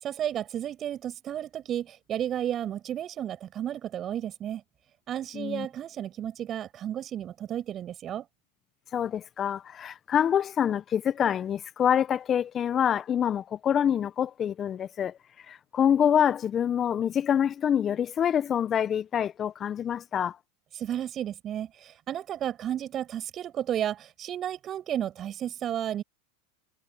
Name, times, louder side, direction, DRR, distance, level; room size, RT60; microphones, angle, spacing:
voice 1, 0.0-4.6 5.1-8.3 20.8-26.0, right 10 dB, 35° right, 6.3 m, -33 dB
voice 2, 5.3-5.7 8.9-20.4, left 9 dB, 30° left, 1.3 m, -26 dB
hypercardioid pair, 95°, 0 cm